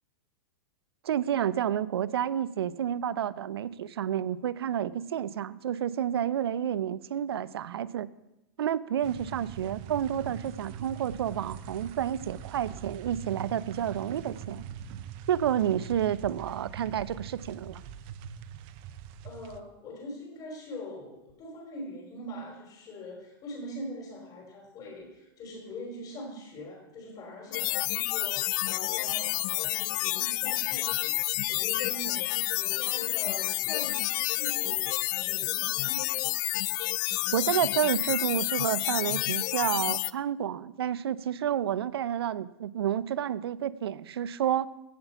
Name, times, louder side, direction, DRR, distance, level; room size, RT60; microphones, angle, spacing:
voice 1, 1.0-8.1 8.6-14.6 15.3-17.8 37.3-44.7, right 10 dB, 85° right, 18 dB, 0.6 m, -30 dB
sound 1, 9.0-19.6, right 8 dB, 45° right, 0.8 m, -42 dB
voice 2, 19.2-36.1, left 1 dB, 30° left, -1 dB, 3.9 m, -42 dB
sound 2, 27.5-40.1, left 20 dB, 50° left, 0.4 m, -29 dB
16.0 x 5.9 x 5.7 m, 0.94 s
hypercardioid pair, 130°, 13 cm